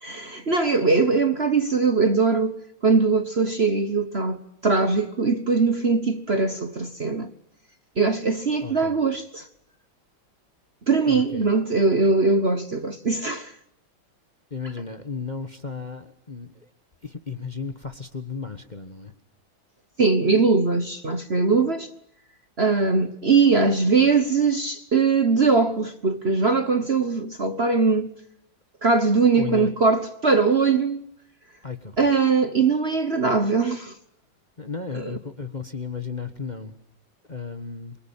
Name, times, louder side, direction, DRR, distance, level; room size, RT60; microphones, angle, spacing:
voice 1, 0.0-2.6 2.8-7.3 8.0-9.4 10.9-13.5 20.0-21.9 22.6-28.1 28.8-31.0 32.0-33.9 34.9-35.1, right 4 dB, 35° right, 1.3 m, -21 dB
voice 2, 8.6-9.0 11.1-11.5 14.5-16.7 17.0-19.1 29.4-29.7 31.6-32.1 34.6-36.7 37.3-38.0, left 5 dB, 25° left, 1.3 m, -34 dB
28.0 x 24.0 x 8.8 m
omnidirectional pair, 2.1 m